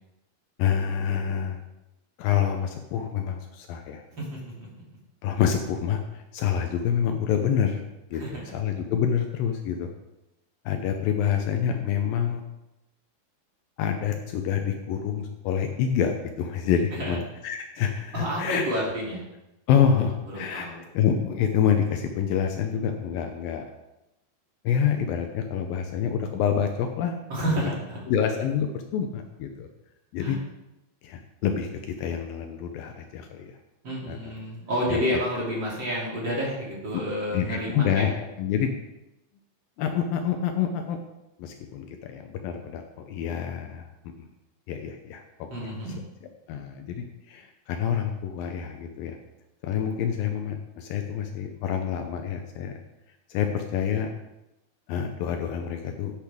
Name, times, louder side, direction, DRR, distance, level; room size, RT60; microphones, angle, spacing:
voice 1, 0.6-1.6 2.2-4.0 5.2-7.8 8.1-9.9 10.7-12.4 13.8-18.7 19.7-20.7 20.9-23.6 24.6-27.2 27.6-27.7 28.1-29.7 30.1-30.4 31.0-33.5 34.1-34.3 34.9-35.0 36.9-37.0 37.3-38.7 39.8-41.0 41.4-44.3 44.7-45.5 46.5-49.2 49.6-52.8 53.3-54.1 54.9-56.1, left 8 dB, 75° left, 5 dB, 2.3 m, -27 dB
voice 2, 4.2-5.0 8.2-8.4 16.9-17.2 18.1-19.2 20.3-20.8 27.3-28.0 30.2-30.4 33.8-38.1 45.5-46.0, equal, 30° right, -5 dB, 3.2 m, -30 dB
10.5 x 10.0 x 3.6 m, 0.95 s
omnidirectional pair, 4.4 m